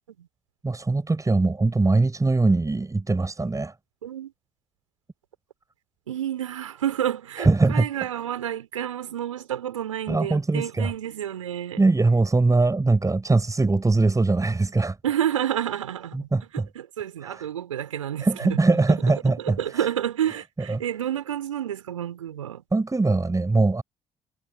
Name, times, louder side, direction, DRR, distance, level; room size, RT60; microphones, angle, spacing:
voice 1, 0.6-3.7 7.4-7.9 10.1-10.9 11.8-15.0 16.1-16.7 17.2-17.5 18.2-19.9 20.7-20.8 22.7-23.8, right 3 dB, 20° right, 7.4 m, -21 dB
voice 2, 6.1-11.8 15.0-18.6 18.9-19.0 19.4-22.6, right 10 dB, 80° right, 5.8 m, -29 dB
figure-of-eight pair, 45°, 17 cm